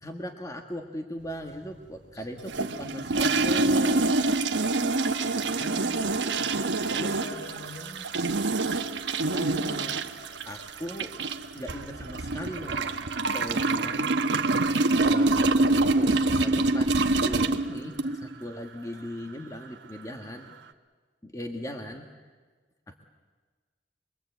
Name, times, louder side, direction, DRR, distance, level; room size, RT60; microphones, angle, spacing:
voice 1, 0.0-4.3 5.6-6.0 6.9-7.2 8.9-10.0 10.4-11.1 11.5-12.9 13.3-14.1 15.0-20.5 21.2-22.3 22.9-23.0, equal, 20° left, 4 dB, 1.4 m, -39 dB
voice 2, 2.1-2.9 5.2-5.6 6.4-8.1, left 1 dB, 75° left, 3 dB, 4.9 m, -46 dB
sound 1, 2.5-18.3, right 2 dB, 85° right, 1.1 m, -26 dB
25.5 x 22.5 x 8.1 m, 1.4 s
head